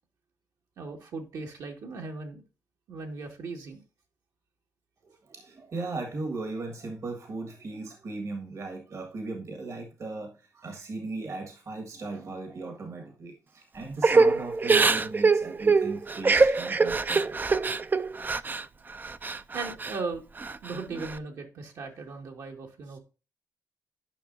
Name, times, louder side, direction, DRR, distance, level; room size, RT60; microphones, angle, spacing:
voice 1, 0.8-2.4 2.9-3.8 19.5-20.2 20.6-23.0, right 4 dB, 70° right, 1 dB, 2.1 m, -37 dB
voice 2, 5.0-17.4, right 3 dB, 50° right, 5 dB, 1.7 m, -37 dB
Crying sobbing / Breathing, 14.0-18.6 19.0-20.0 20.4-21.1, right 4 dB, 30° right, 0.4 m, -23 dB
11.0 x 5.6 x 2.6 m, 0.31 s
cardioid pair, 80°, 7 cm